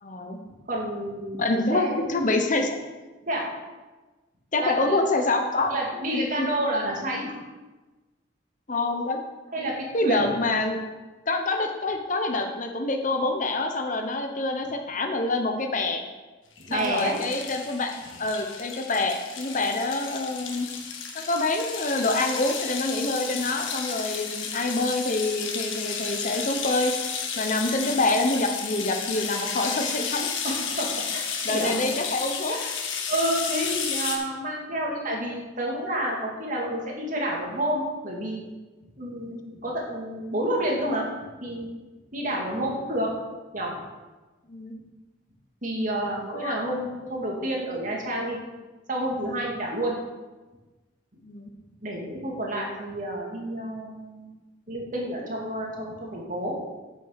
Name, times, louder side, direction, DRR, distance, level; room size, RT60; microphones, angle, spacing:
voice 1, 0.0-0.4 1.4-2.7 4.5-5.7 6.1-6.5 8.7-9.2 9.6-9.7 9.9-10.8 11.3-16.1 16.7-20.7 21.1-26.9 27.4-30.4 31.4-32.6 39.1-39.3 42.5-42.7 44.5-44.7 46.1-46.5 47.1-47.2 51.2-51.5, left 2 dB, 40° left, 5 dB, 0.9 m, -26 dB
voice 2, 0.7-2.1 3.3-3.5 4.6-5.0 5.7-7.4 9.5-10.6 16.6-17.2 30.4-31.8 32.5-32.7 33.1-38.4 39.0-41.1 41.4-41.7 42.1-43.1 43.5-43.7 45.6-48.4 48.9-50.0 51.8-54.3 54.7-56.6, right 1 dB, 40° right, -1 dB, 2.3 m, -29 dB
sound 1, 16.6-34.2, left 6 dB, 80° left, 1.5 m, -32 dB
9.1 x 6.3 x 6.5 m, 1.2 s
head